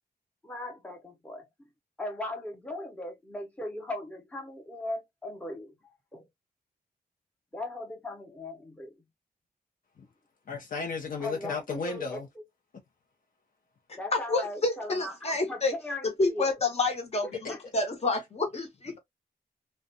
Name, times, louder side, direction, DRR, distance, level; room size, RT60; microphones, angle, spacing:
voice 1, 0.4-1.5 2.0-6.3 7.5-8.9 11.2-12.4 14.0-16.6 17.5-17.6, left 1 dB, 10° left, 0.7 m, -38 dB
voice 2, 10.5-12.3, left 5 dB, 60° left, 0.6 m, -34 dB
voice 3, 14.1-15.7 16.2-19.0, left 3 dB, 40° left, 0.9 m, -29 dB
2.4 x 2.1 x 2.6 m
wide cardioid pair, 120°, 16 cm